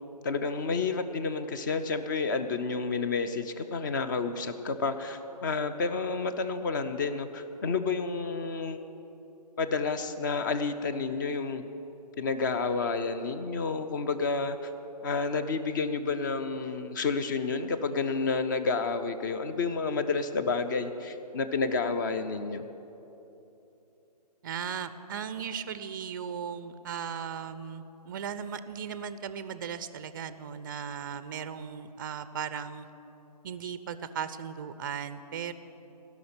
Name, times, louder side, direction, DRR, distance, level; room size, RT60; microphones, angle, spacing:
voice 1, 0.2-8.8 9.6-11.6 12.2-14.7 15.0-22.6, left 4 dB, 30° left, 9 dB, 0.5 m, -30 dB
voice 2, 24.4-32.9 33.4-35.5, right 7 dB, 30° right, 13 dB, 0.4 m, -37 dB
16.0 x 5.9 x 8.7 m, 3.0 s
figure-of-eight pair, 150°, 21 cm